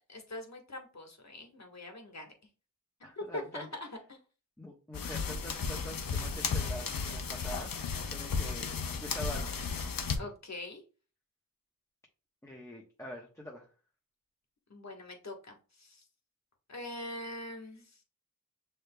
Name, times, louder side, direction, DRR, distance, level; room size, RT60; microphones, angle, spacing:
voice 1, 0.1-2.3 3.2-4.2 10.2-10.8 14.7-16.0 16.7-18.0, left 1 dB, 50° left, 3 dB, 1.4 m, -43 dB
voice 2, 3.0-3.7 4.6-9.6 12.4-13.7, equal, 10° left, -1 dB, 1.1 m, -45 dB
sound 1, 4.9-10.2, left 5 dB, 75° left, 0.7 m, -34 dB
6.4 x 3.3 x 2.2 m, 0.36 s
cardioid pair, 45°, 34 cm